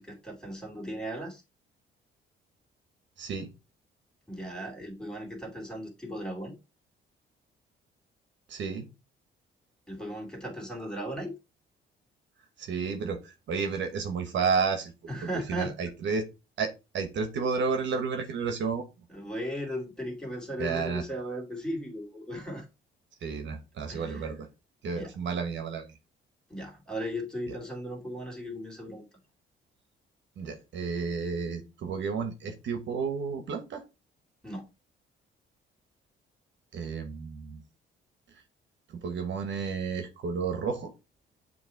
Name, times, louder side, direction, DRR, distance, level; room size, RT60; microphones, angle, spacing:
voice 1, 0.0-1.4 4.3-6.5 9.9-11.3 15.1-15.7 19.1-22.7 23.9-24.4 25.0-25.1 26.5-29.0 34.4-34.7, equal, 5° left, 2.5 m, -37 dB
voice 2, 3.2-3.5 8.5-8.9 12.6-14.9 15.5-16.2 16.6-18.8 20.6-21.0 23.2-24.5 24.8-25.9 30.4-33.8 36.7-37.6 38.9-40.9, right 5 dB, 65° right, 1.1 m, -31 dB
7.2 x 3.0 x 4.4 m
cardioid pair, 90°, 20 cm